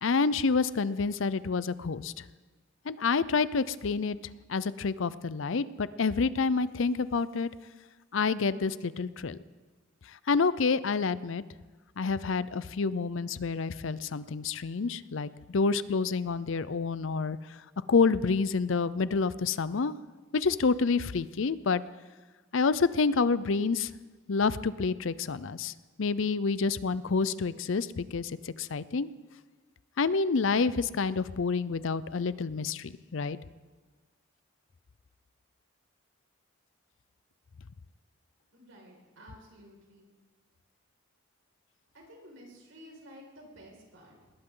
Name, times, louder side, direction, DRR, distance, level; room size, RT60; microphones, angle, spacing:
voice 1, 0.0-2.1 2.9-4.2 4.5-7.5 8.1-9.4 10.3-11.4 12.0-17.4 17.9-20.0 20.3-21.8 22.5-23.9 24.3-25.7 26.0-29.1 30.0-33.4, left 4 dB, 70° left, 16 dB, 0.5 m, -28 dB
voice 2, 38.5-40.1 41.9-44.3, equal, 70° right, -1 dB, 5.3 m, -52 dB
20.5 x 18.5 x 3.8 m, 1.3 s
head